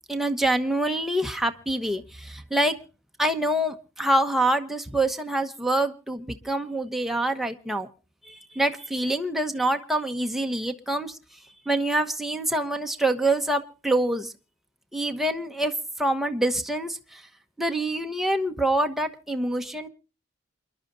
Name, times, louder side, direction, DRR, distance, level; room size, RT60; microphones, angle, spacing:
voice 1, 0.1-2.8 3.2-7.9 8.3-11.2 11.7-14.3 14.9-15.7 16.0-17.2 17.6-19.9, right 1 dB, ahead, 4 dB, 1.0 m, -26 dB
28.0 x 11.5 x 2.6 m, 0.33 s
head